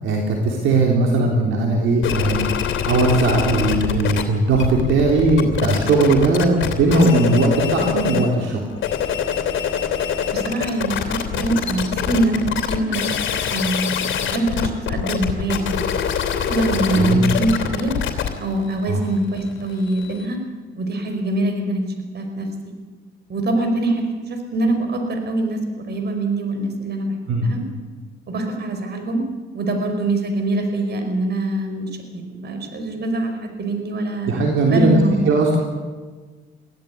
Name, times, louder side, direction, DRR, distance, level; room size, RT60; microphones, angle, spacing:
voice 1, 0.0-8.6 16.7-17.2 18.9-19.0 27.3-27.5 34.3-35.0 35.3-35.6, right 2 dB, 75° right, 1 dB, 3.6 m, -18 dB
sound 1, 2.0-4.2 4.5-8.3 8.7-20.3, left 8 dB, 80° left, 2.9 m, -24 dB
voice 2, 10.3-13.1 13.5-15.9 16.5-17.9 18.4-20.4 20.8-21.8 22.1-22.5 23.3-27.6 28.3-29.2 29.5-34.3 34.7-35.6, right 2 dB, 55° right, 5 dB, 5.2 m, -23 dB
23.0 x 16.0 x 9.6 m, 1.4 s
cardioid pair, 90°, 20 cm